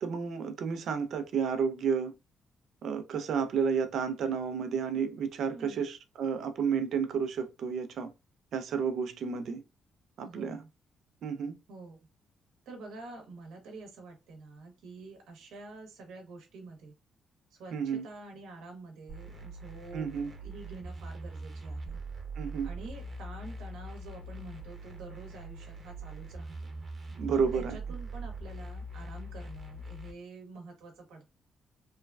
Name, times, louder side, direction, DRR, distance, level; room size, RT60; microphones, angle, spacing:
voice 1, 0.0-2.1 2.8-8.1 8.5-9.6 10.2-10.6 11.2-11.6 17.7-18.0 19.9-20.3 22.4-22.7 27.1-27.8, right 6 dB, 70° right, 0.4 m, -31 dB
voice 2, 5.5-5.9 10.2-10.7 11.7-12.0 12.7-16.9 17.5-22.0 22.6-26.7 27.3-31.3, right 3 dB, 90° right, 0.8 m, -47 dB
sound 1, 19.1-30.1, right 2 dB, 35° right, 0.8 m, -42 dB
3.1 x 2.2 x 2.3 m
cardioid pair, 90°, 0 cm